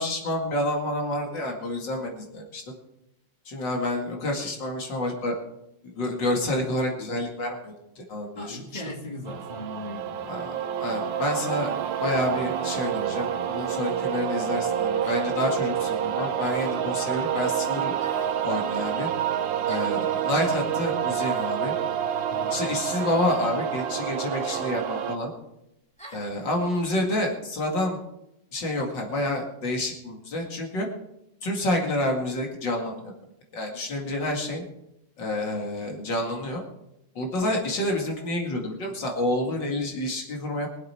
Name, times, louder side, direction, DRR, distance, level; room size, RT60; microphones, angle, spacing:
voice 1, 0.0-2.6 3.5-5.4 5.8-8.8 10.3-11.7 12.0-17.9 18.4-19.1 19.7-21.7 22.5-25.3 26.1-28.0 28.5-30.9 31.4-33.1 33.5-34.6 35.2-36.6 37.2-40.7, left 1 dB, 75° left, 1 dB, 2.8 m, -28 dB
voice 2, 8.4-10.2 22.3-22.6, left 1 dB, 20° left, -1 dB, 2.9 m, -38 dB
sound 1, 9.3-25.2, right 9 dB, 80° right, 1.5 m, -28 dB
sound 2, 13.6-13.8 15.0-15.3 16.4-16.8 18.0-18.4 19.7-20.0 21.1-21.6 22.9-23.2 24.4-24.7 26.0-26.3, equal, 5° left, 2.3 m, -44 dB
23.5 x 8.0 x 4.4 m, 0.86 s
omnidirectional pair, 2.0 m